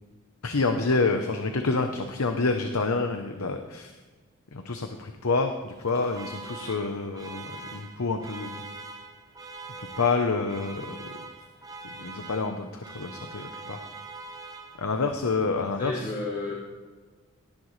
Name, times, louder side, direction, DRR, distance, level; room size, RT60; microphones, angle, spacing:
voice 1, 0.4-3.9 4.5-8.6 9.8-11.1 11.8-13.8 14.8-16.1, left 3 dB, 90° left, 5 dB, 0.8 m, -28 dB
Alarm, 5.7-15.1, right 3 dB, 15° right, 0.8 m, -43 dB
voice 2, 15.6-16.5, left 2 dB, 35° left, -6 dB, 2.2 m, -33 dB
18.0 x 10.5 x 3.2 m, 1.4 s
head